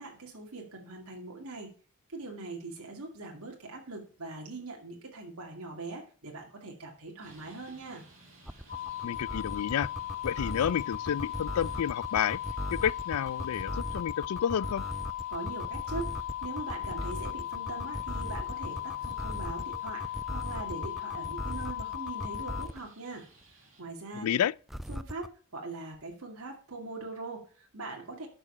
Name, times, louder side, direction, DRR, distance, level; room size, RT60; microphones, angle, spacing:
voice 1, 0.0-1.7 2.1-8.0 15.3-23.3 23.8-24.3 24.9-28.3, right 3 dB, 80° right, 2.2 m, -42 dB
Traffic noise roadway noise, 7.2-23.8, right 2 dB, 35° right, 6.6 m, -58 dB
sound 1, 8.5-22.9 24.7-25.3, equal, ahead, 0.3 m, -38 dB
sound 2, 8.7-22.7, left 13 dB, 40° left, 2.1 m, -37 dB
voice 2, 9.0-9.9 10.2-12.4 12.7-14.8 24.2-24.5, left 9 dB, 80° left, 0.4 m, -30 dB
12.0 x 5.1 x 5.5 m
head